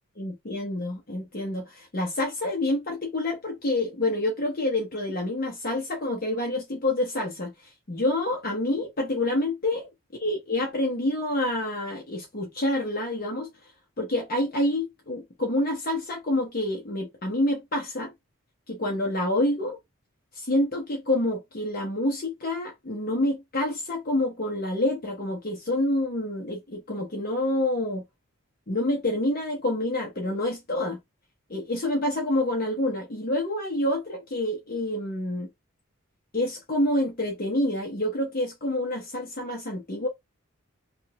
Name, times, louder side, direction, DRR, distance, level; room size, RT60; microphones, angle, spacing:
voice 1, 0.2-9.9 10.2-13.5 14.0-18.1 18.7-19.8 20.3-28.0 28.7-31.0 31.5-35.5 36.3-40.1, left 1 dB, 40° left, 0.8 m, -27 dB
2.8 x 2.5 x 2.9 m
head